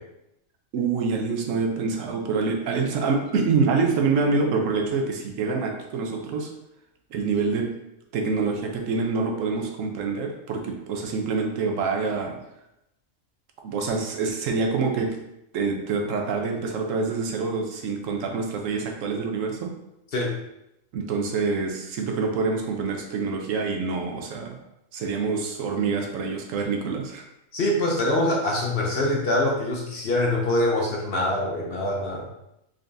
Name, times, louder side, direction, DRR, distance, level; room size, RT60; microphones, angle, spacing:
voice 1, 0.7-6.5 7.1-7.7 8.1-12.4 13.6-15.2 15.5-19.7 20.9-24.6 24.9-27.2, right 4 dB, 75° right, 3 dB, 1.0 m, -26 dB
voice 2, 27.5-32.3, left 1 dB, 55° left, -2 dB, 0.8 m, -24 dB
3.9 x 3.3 x 2.6 m, 0.85 s
omnidirectional pair, 1.4 m